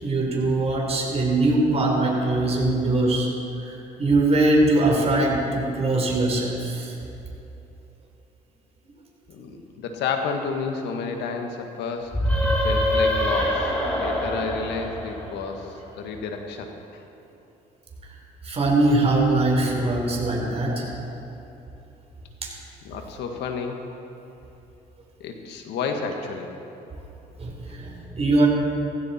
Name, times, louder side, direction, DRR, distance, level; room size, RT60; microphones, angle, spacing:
voice 1, 0.0-3.3 4.0-6.9 18.4-20.8 27.4-28.5, right 2 dB, 35° right, -1 dB, 3.9 m, -21 dB
voice 2, 9.3-12.1 12.4-17.0 22.8-23.8 25.2-26.5, left 5 dB, 85° left, 4 dB, 1.7 m, -31 dB
sound 1, 12.1-15.7, equal, 10° left, 3.3 m, -24 dB
15.5 x 15.5 x 4.4 m, 3.0 s
cardioid pair, 90°, 17 cm